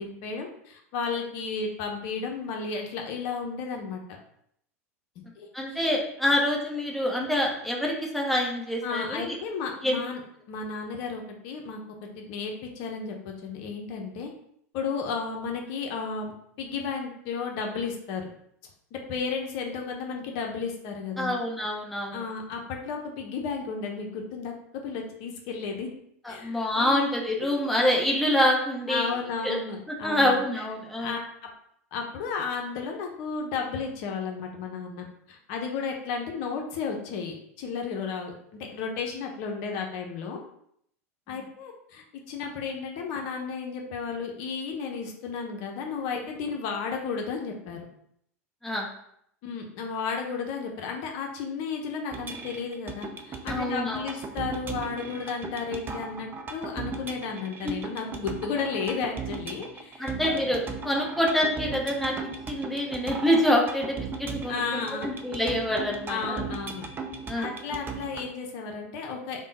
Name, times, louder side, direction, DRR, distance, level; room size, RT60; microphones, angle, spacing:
voice 1, 0.0-4.0 5.3-5.8 8.8-10.2 10.5-11.8 12.2-14.3 14.7-16.3 16.6-18.2 18.9-21.3 22.1-24.5 24.8-25.9 26.3-27.0 27.4-27.5 28.9-30.4 31.0-31.3 31.9-40.4 41.3-47.8 49.4-60.4 64.5-65.1 66.1-66.9 67.4-69.4, left 5 dB, 60° left, 2 dB, 0.7 m, -33 dB
voice 2, 5.5-9.4 9.8-10.0 21.2-22.2 26.2-29.1 29.4-29.6 30.0-31.2 41.3-41.4 48.6-48.9 53.5-54.1 57.6-57.7 60.0-66.4 67.3-67.5, left 1 dB, ahead, -2 dB, 0.8 m, -26 dB
sound 1, 52.1-68.3, right 4 dB, 25° right, 0.5 m, -37 dB
3.5 x 2.2 x 4.0 m, 0.70 s
hypercardioid pair, 90°, 8 cm